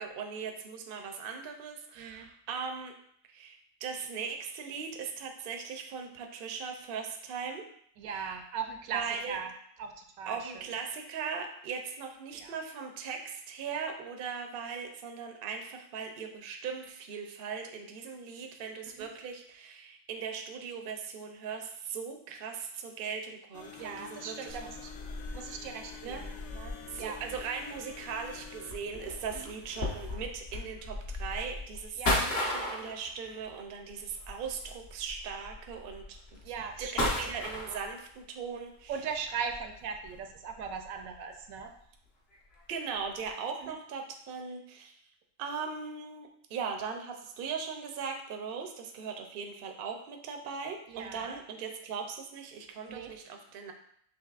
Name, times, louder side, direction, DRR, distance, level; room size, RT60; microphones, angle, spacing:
voice 1, 0.0-2.9 3.3-7.6 8.1-8.3 8.9-9.4 10.3-24.6 26.0-26.2 26.9-36.2 36.8-39.0 42.7-44.9 45.4-53.7, right 6 dB, 55° right, 3 dB, 0.6 m, -39 dB
voice 2, 2.0-2.3 8.0-9.5 9.8-10.6 12.3-12.5 18.9-19.1 23.8-24.9 25.3-27.2 29.3-29.5 32.0-32.1 36.4-37.1 38.9-41.7 43.6-43.8 50.9-51.4 52.9-53.1, right 6 dB, 80° right, 5 dB, 1.0 m, -39 dB
sound 1, 23.5-28.7, left 7 dB, 65° left, 0.8 m, -48 dB
sound 2, 24.5-38.2 38.9-41.3 41.6-41.8 42.3-42.6 42.9-43.3, left 1 dB, 50° left, 1.2 m, -37 dB
6.1 x 2.9 x 2.4 m, 0.66 s
omnidirectional pair, 1.4 m